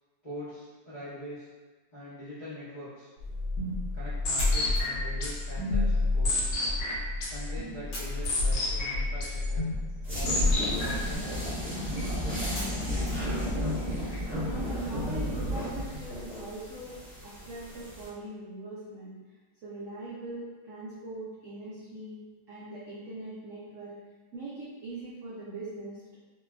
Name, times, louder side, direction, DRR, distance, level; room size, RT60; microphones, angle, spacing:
voice 1, 0.2-1.5 1.9-3.1 3.9-6.6 7.3-9.7 10.1-11.8, left 1 dB, 40° left, -14 dB, 0.6 m, -43 dB
sound 1, 3.2-11.2, left 2 dB, 90° left, 1.4 m, -29 dB
sound 2, 3.2-16.3, right 1 dB, 75° left, 1.5 m, -47 dB
sound 3, 10.0-18.1, equal, 15° right, 0.5 m, -33 dB
voice 2, 13.2-14.1 14.5-19.2 19.6-22.2 22.5-24.0 24.3-26.2, right 2 dB, 80° right, -7 dB, 0.7 m, -41 dB
3.2 x 2.2 x 2.2 m, 1.3 s
omnidirectional pair, 1.9 m